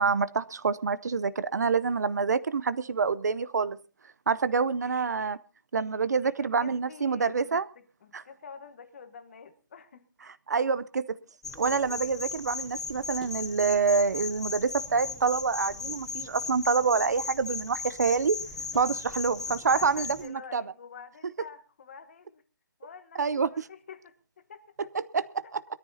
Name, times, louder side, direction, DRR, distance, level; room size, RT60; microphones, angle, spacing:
voice 1, 0.0-3.8 4.3-5.4 5.7-7.7 8.1-8.2 10.5-11.2 11.6-18.4 18.7-20.6 23.2-23.5 25.1-25.6, right 5 dB, 50° right, 0.6 m, -27 dB
voice 2, 6.2-10.1 18.6-19.1 19.7-22.4 22.8-24.9 25.4-25.5, left 6 dB, 35° left, 1.2 m, -48 dB
sound 1, 11.4-20.3, left 4 dB, 5° left, 0.6 m, -37 dB
22.5 x 13.5 x 2.8 m
hypercardioid pair, 170°, 12 cm